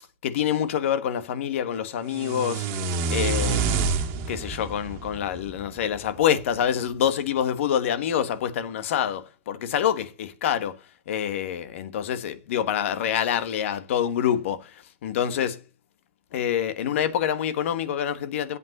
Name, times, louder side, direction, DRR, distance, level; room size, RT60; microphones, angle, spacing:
voice 1, 0.2-2.7 3.1-3.9 4.3-10.8 11.1-15.6 16.3-18.6, left 9 dB, 75° left, 1.3 m, -26 dB
sound 1, 2.1-6.2, right 4 dB, 45° right, 1.6 m, -28 dB
8.4 x 5.4 x 7.7 m
supercardioid pair, 150°, 7 cm